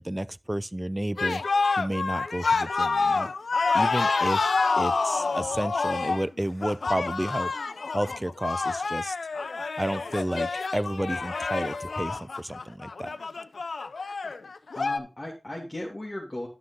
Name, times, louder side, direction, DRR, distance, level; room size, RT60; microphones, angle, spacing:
voice 1, 0.0-1.4 1.8-3.3 3.7-7.5 7.9-9.2 9.8-13.1, right 1 dB, 15° right, 0.4 m, -31 dB
sound 1, 1.2-15.0, left 4 dB, 85° left, 0.6 m, -28 dB
voice 2, 14.7-16.5, left 1 dB, 25° left, 2.3 m, -36 dB
11.0 x 6.0 x 3.8 m
wide cardioid pair, 60°, 0 cm